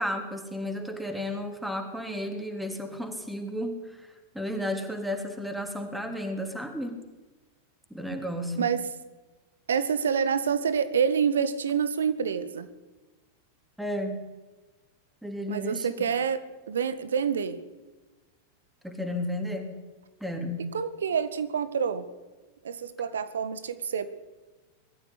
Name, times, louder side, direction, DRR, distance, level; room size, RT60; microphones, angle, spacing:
voice 1, 0.0-7.0 7.9-8.7 13.8-14.2 15.2-15.9 18.8-19.8 20.2-20.6, left 1 dB, ahead, 3 dB, 3.7 m, -33 dB
voice 2, 9.7-12.7 15.5-17.6 20.7-22.0 22.6-24.1, right 7 dB, 65° right, 12 dB, 1.8 m, -27 dB
22.0 x 14.0 x 10.0 m, 1.2 s
figure-of-eight pair, 90°, 0 cm